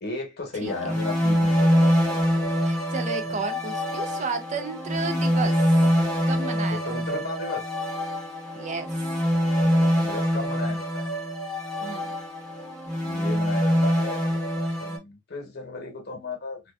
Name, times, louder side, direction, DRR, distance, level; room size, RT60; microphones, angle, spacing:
voice 1, 0.0-1.7 3.3-3.4 6.7-7.6 10.0-11.1 13.0-14.3 14.8-16.6, left 3 dB, 55° left, 0.9 m, -34 dB
voice 2, 0.6-1.0 2.5-5.6 6.3-7.2 8.5-8.9 11.8-12.2, right 4 dB, 35° right, 0.4 m, -33 dB
sound 1, 0.7-15.0, equal, 5° left, 0.9 m, -24 dB
2.5 x 2.2 x 2.2 m
head